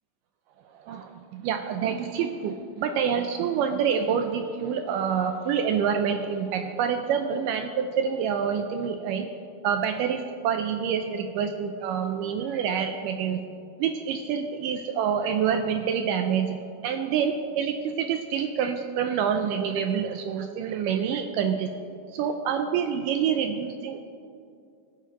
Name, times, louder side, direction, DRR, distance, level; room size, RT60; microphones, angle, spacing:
voice 1, 0.7-9.3 9.6-13.4 13.8-21.7 22.1-24.0, right 7 dB, 80° right, 6 dB, 1.9 m, -27 dB
21.5 x 9.2 x 3.0 m, 2.5 s
omnidirectional pair, 4.3 m